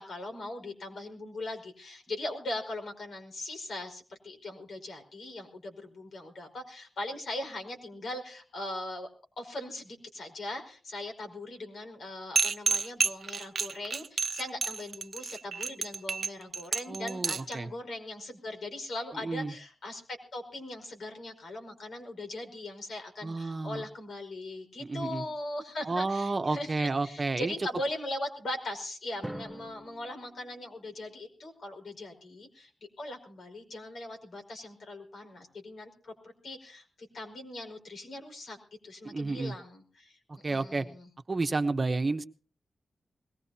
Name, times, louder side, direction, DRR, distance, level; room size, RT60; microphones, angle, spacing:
voice 1, 0.0-9.1 9.4-20.0 20.3-32.7 33.0-38.6 38.8-40.2 40.5-41.1, left 1 dB, 75° left, 3 dB, 5.0 m, -40 dB
sound 1, 12.4-17.5, right 5 dB, 60° right, 0.7 m, -30 dB
voice 2, 16.9-17.7 19.1-19.5 23.2-23.8 24.8-25.2 25.8-27.5 39.0-39.5 40.4-40.9 41.3-42.2, right 3 dB, 40° right, 7 dB, 1.0 m, -31 dB
Drum, 29.2-31.2, right 1 dB, 5° right, 3.6 m, -45 dB
21.5 x 19.5 x 2.9 m, 0.41 s
wide cardioid pair, 100°, 0 cm